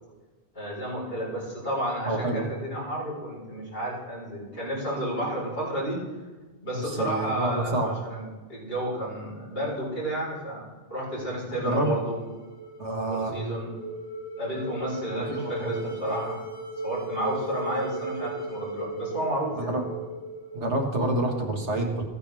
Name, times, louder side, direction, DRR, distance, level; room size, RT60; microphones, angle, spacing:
voice 1, 0.5-6.0 6.6-10.6 10.9-12.2 13.1-13.7 14.4-16.4 16.8-19.7, right 1 dB, 55° left, -6 dB, 4.7 m, -31 dB
voice 2, 2.1-2.5 6.7-7.9 11.6-11.9 12.8-13.4 15.2-15.8 19.6-19.8 20.5-22.0, right 2 dB, 80° right, 2 dB, 1.8 m, -28 dB
sound 1, 12.0-21.1, right 2 dB, 85° left, 2.8 m, -37 dB
15.0 x 9.5 x 3.4 m, 1.3 s
omnidirectional pair, 1.2 m